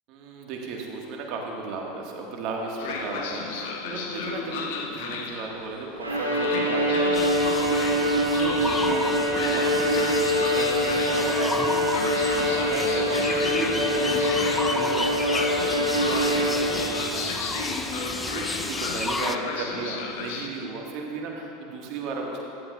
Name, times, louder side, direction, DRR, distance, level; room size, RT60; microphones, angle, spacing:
voice 1, 0.1-22.4, right 3 dB, 50° right, 0 dB, 1.6 m, -35 dB
Train, 2.8-20.5, left 4 dB, 60° left, 0.9 m, -34 dB
Bowed string instrument, 6.0-17.0, equal, 90° right, 1.3 m, -24 dB
sound 1, 7.1-19.4, left 2 dB, 10° left, 0.5 m, -32 dB
15.0 x 11.0 x 2.4 m, 2.8 s
figure-of-eight pair, 80°, 0 cm